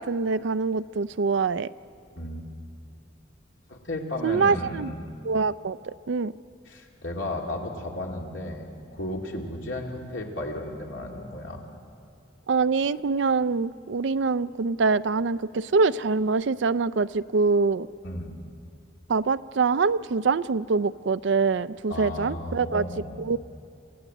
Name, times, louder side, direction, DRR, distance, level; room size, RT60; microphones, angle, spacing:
voice 1, 0.0-1.7 4.2-4.9 5.2-6.3 12.5-17.9 19.1-22.8 23.2-23.4, right 4 dB, 70° right, 15 dB, 0.4 m, -24 dB
voice 2, 2.2-2.5 3.7-5.2 6.7-11.6 18.0-18.3 21.9-23.3, left 1 dB, 75° left, 0 dB, 2.9 m, -34 dB
27.0 x 15.5 x 8.1 m, 2.4 s
head